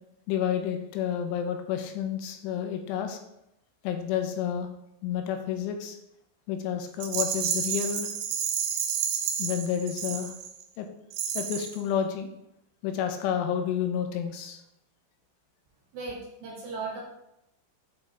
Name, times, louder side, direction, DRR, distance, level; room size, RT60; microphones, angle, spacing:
voice 1, 0.3-3.2 3.8-4.7 5.0-6.0 6.5-8.1 9.4-10.3 10.8-10.9 11.4-12.3 12.8-14.6, left 9 dB, 90° left, 5 dB, 3.1 m, -30 dB
Rattle, 7.0-10.6 11.1-11.8, right 8 dB, 85° right, 2.6 m, -30 dB
voice 2, 15.9-17.0, right 3 dB, 65° right, -4 dB, 3.1 m, -36 dB
8.3 x 3.7 x 3.3 m, 0.83 s
omnidirectional pair, 5.5 m